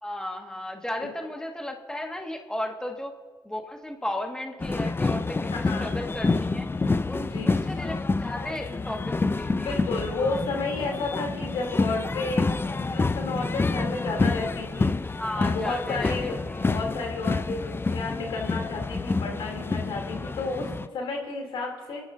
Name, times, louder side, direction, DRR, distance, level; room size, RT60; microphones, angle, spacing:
voice 1, 0.0-3.1 3.5-6.7 7.1-9.8 15.1-16.6, left 1 dB, 10° left, 1 dB, 1.9 m, -35 dB
sound 1, 4.6-20.9, left 3 dB, 25° left, 0.5 m, -28 dB
voice 2, 5.5-5.9 7.2-7.5 8.4-8.6 9.6-14.9 15.3-16.4 16.6-22.1, left 3 dB, 80° left, 0 dB, 3.2 m, -32 dB
29.0 x 11.5 x 2.8 m, 1.4 s
cardioid pair, 60°, 9 cm